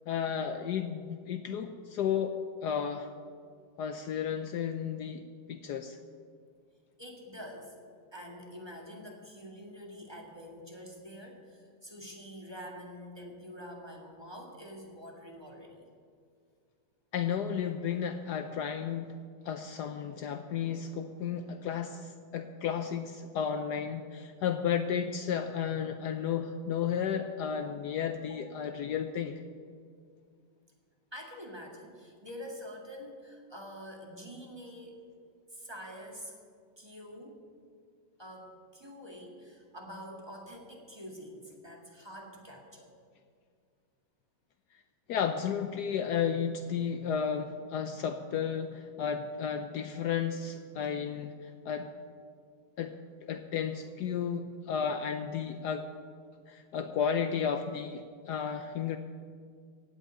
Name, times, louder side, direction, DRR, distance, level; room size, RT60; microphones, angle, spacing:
voice 1, 0.1-3.1 3.8-5.2 5.5-6.0 17.1-19.1 19.4-29.4 45.1-51.9 52.8-55.9 56.5-59.0, left 7 dB, 70° left, 8 dB, 1.1 m, -33 dB
voice 2, 7.0-7.7 8.1-15.9 28.2-28.4 31.1-35.0 35.5-36.4 36.8-37.4 38.2-42.9, equal, 15° right, -1 dB, 1.9 m, -46 dB
16.0 x 6.5 x 9.0 m, 2.1 s
omnidirectional pair, 2.0 m